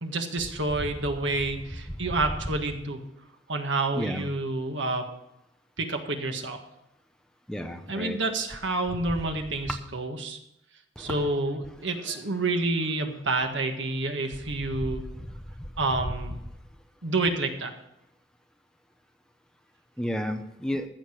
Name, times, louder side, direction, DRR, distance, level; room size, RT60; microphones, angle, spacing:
voice 1, 0.0-3.0 3.5-5.0 5.8-6.6 7.9-10.4 11.0-15.0 15.8-16.3 17.0-17.7, right 2 dB, 75° right, 5 dB, 1.7 m, -28 dB
voice 2, 3.9-4.3 7.5-8.2 9.7-9.8 11.1-11.3 20.0-20.9, equal, 5° left, 6 dB, 0.8 m, -31 dB
15.0 x 6.6 x 6.5 m, 0.88 s
head